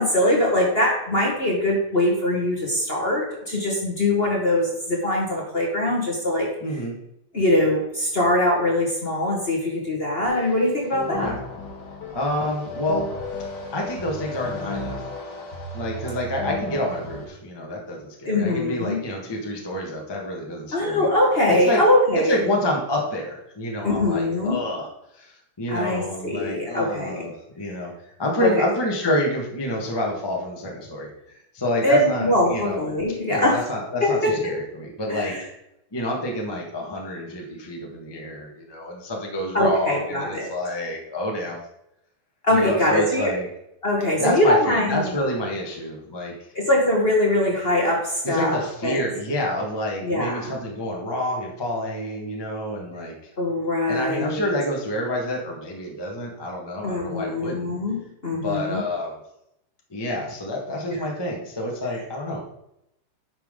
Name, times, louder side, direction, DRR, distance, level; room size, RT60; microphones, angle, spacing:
voice 1, 0.0-6.5 7.3-11.3 18.3-19.0 20.7-22.4 23.8-24.6 25.7-27.3 28.4-28.7 31.8-33.6 34.0-34.3 35.1-35.4 39.5-40.5 42.4-43.3 43.8-45.1 46.5-49.0 50.0-50.5 53.4-54.5 56.8-58.8 60.9-61.0, left 1 dB, 30° left, -2 dB, 1.4 m, -22 dB
voice 2, 6.6-7.0 11.1-11.4 12.1-13.1 13.7-15.1 15.7-21.1 21.5-21.8 22.1-32.8 33.3-35.5 35.9-41.6 42.5-43.5 44.2-46.5 48.2-53.2 53.9-57.7 58.3-59.1 59.9-62.4, left 1 dB, 15° left, -1 dB, 1.2 m, -28 dB
sound 1, 10.2-17.2, left 2 dB, 55° left, 1.7 m, -34 dB
10.0 x 6.0 x 3.7 m, 0.83 s
omnidirectional pair, 2.4 m